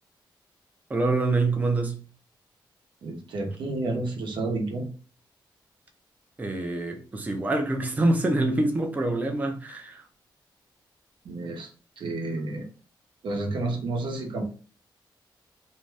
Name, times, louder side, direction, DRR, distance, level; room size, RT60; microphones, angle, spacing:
voice 1, 0.9-2.0 6.4-10.0, right 2 dB, 20° right, 0.5 m, -25 dB
voice 2, 3.0-4.9 11.2-12.7 13.2-14.4, right 2 dB, 80° right, 0.8 m, -30 dB
2.6 x 2.2 x 3.2 m
wide cardioid pair, 125°, 8 cm